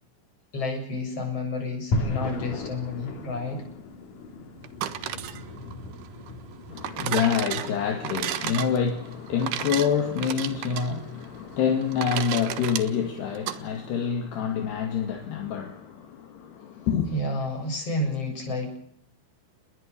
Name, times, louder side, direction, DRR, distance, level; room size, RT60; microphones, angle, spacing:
voice 1, 0.5-3.6 17.1-18.7, left 2 dB, 30° left, 8.3 m, -30 dB
sound 1, 1.9-12.2, left 2 dB, 45° left, 4.5 m, -37 dB
sound 2, 4.6-13.6, right 11 dB, 70° right, 3.1 m, -34 dB
voice 2, 6.7-17.1, left 7 dB, 65° left, 4.2 m, -27 dB
29.5 x 21.0 x 6.8 m
omnidirectional pair, 5.2 m